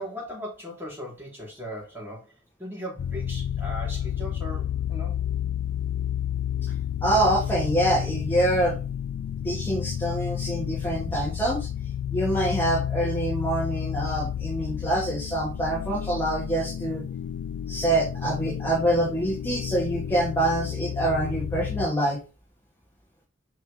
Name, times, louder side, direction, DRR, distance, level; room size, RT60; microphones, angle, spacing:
voice 1, 0.0-5.3, equal, 10° right, 4.2 m, -38 dB
sound 1, 3.0-21.9, left 9 dB, 85° left, 0.3 m, -31 dB
voice 2, 7.0-8.8 9.4-11.7 12.1-17.0 17.7-22.2, right 1 dB, 10° left, 2.1 m, -25 dB
6.3 x 5.7 x 3.7 m
head